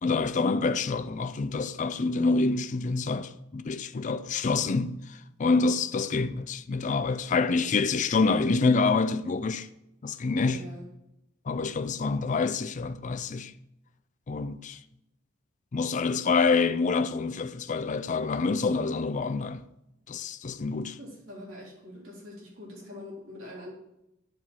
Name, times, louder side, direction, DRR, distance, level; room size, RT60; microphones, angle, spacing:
voice 1, 0.0-9.7 10.0-10.6 11.5-13.5 14.3-14.8 15.7-19.6 20.1-21.0, left 4 dB, 40° left, 0.4 m, -27 dB
voice 2, 10.4-10.9 21.0-23.7, left 1 dB, 80° right, 3.9 m, -43 dB
10.5 x 4.5 x 7.4 m
head